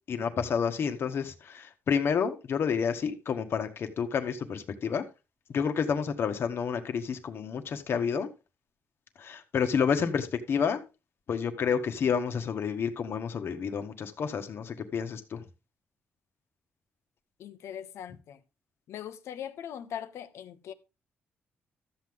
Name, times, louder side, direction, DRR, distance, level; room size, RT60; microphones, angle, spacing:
voice 1, 0.1-5.0 5.5-8.3 9.2-10.8 11.3-15.4, left 6 dB, 60° left, 1.4 m, -29 dB
voice 2, 17.4-18.4 18.9-20.7, left 9 dB, 80° left, 1.1 m, -40 dB
12.5 x 7.9 x 3.6 m
cardioid pair, 105°, 5 cm